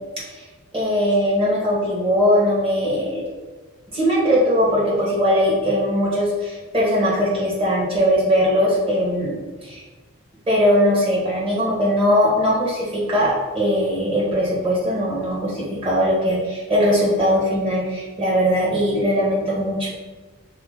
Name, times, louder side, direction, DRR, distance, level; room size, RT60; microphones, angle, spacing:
voice 1, 0.7-3.2 3.9-9.8 10.5-19.9, equal, 25° right, -6 dB, 1.8 m, -20 dB
5.7 x 4.3 x 3.8 m, 1.3 s
head